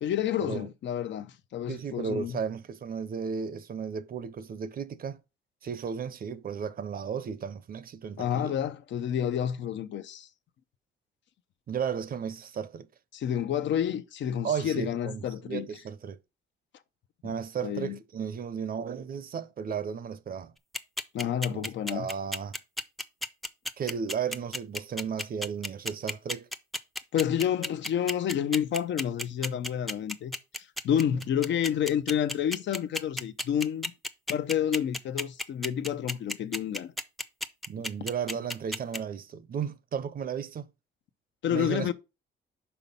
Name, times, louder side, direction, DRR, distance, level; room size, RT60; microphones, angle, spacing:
voice 1, 0.0-2.4 8.2-10.3 13.1-15.7 17.6-18.0 21.1-22.1 27.1-33.9 34.3-36.9 41.4-41.9, left 9 dB, 65° left, 0.7 m, -29 dB
voice 2, 1.7-5.2 5.6-8.6 11.7-12.9 14.4-16.2 17.2-20.5 21.5-22.6 23.8-26.5 37.7-40.7 41.5-41.9, right 7 dB, 45° right, 0.7 m, -34 dB
sound 1, 20.7-39.0, left 1 dB, ahead, 0.6 m, -32 dB
5.7 x 4.1 x 5.4 m
cardioid pair, 90°, 20 cm